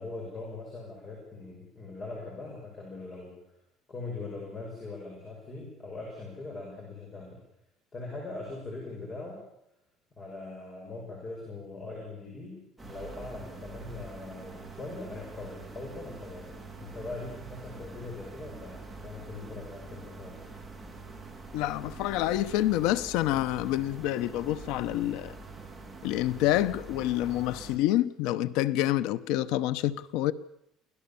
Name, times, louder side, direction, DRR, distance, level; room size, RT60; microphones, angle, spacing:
voice 1, 0.0-3.4 3.9-7.4 7.9-9.4 10.1-16.5 16.8-20.4, left 3 dB, 25° left, 6.0 m, -41 dB
sound 1, 12.8-27.8, right 3 dB, 5° right, 3.4 m, -45 dB
voice 2, 21.5-25.4 26.0-30.3, left 14 dB, 75° left, 0.9 m, -27 dB
24.5 x 18.0 x 7.0 m
cardioid pair, 165°, 0 cm